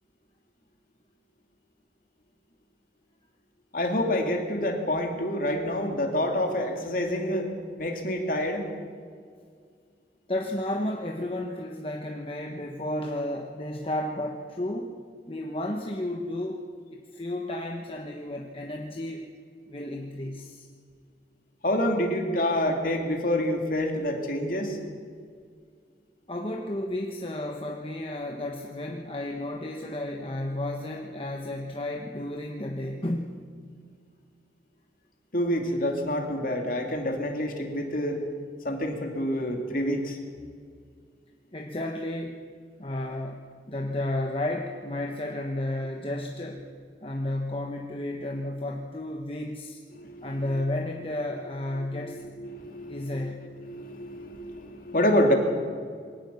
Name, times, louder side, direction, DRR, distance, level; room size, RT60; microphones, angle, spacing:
voice 1, 3.7-7.5 7.8-8.7 21.6-24.8 35.3-38.2 38.6-40.2 49.9-50.3 52.4-53.4 53.7-55.3, left 1 dB, 50° left, 3 dB, 2.7 m, -27 dB
voice 2, 10.3-15.0 15.3-16.6 16.9-19.3 19.7-20.7 26.3-33.5 41.5-42.5 42.8-46.6 47.0-49.8 50.2-52.2 52.9-53.5, left 1 dB, 30° left, 2 dB, 1.2 m, -32 dB
22.5 x 18.0 x 7.0 m, 2.1 s
head